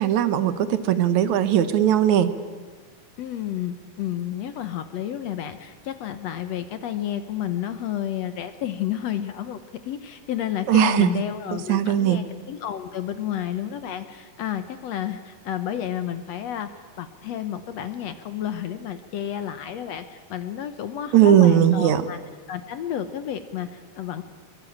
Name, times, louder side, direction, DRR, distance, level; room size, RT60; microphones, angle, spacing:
voice 1, 0.0-2.3 10.7-11.1 11.5-12.2 21.1-22.1, right 10 dB, 70° right, 12 dB, 2.2 m, -19 dB
voice 2, 3.2-16.7 17.0-22.2 22.5-24.2, left 10 dB, 65° left, 10 dB, 1.8 m, -31 dB
22.5 x 22.0 x 8.6 m, 1.5 s
omnidirectional pair, 3.7 m